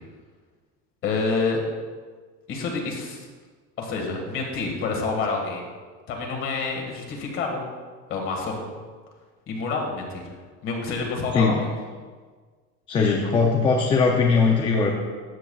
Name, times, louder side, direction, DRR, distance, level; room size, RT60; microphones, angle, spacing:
voice 1, 1.0-1.6 2.5-3.3 3.8-5.7 6.1-7.6 8.1-8.8 9.5-10.3 10.6-11.7 13.2-13.3, left 4 dB, 40° left, 0 dB, 1.7 m, -28 dB
voice 2, 12.9-14.9, left 4 dB, 15° left, 0 dB, 0.4 m, -20 dB
13.0 x 8.1 x 2.3 m, 1.5 s
cardioid pair, 175°, 31 cm